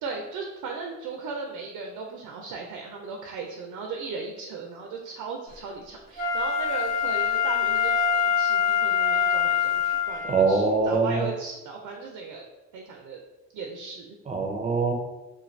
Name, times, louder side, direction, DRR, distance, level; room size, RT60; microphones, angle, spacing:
voice 1, 0.0-12.4 12.7-13.2 13.5-14.2, right 4 dB, 85° right, 2 dB, 0.5 m, -37 dB
Wind instrument woodwind instrument, 6.2-10.4 11.0-11.1, left 7 dB, 30° left, 0.9 m, -24 dB
voice 2, 10.3-11.3 14.3-14.9, right 4 dB, 25° right, 2 dB, 0.5 m, -23 dB
2.5 x 2.2 x 3.1 m, 1.1 s
cardioid pair, 90°, 30 cm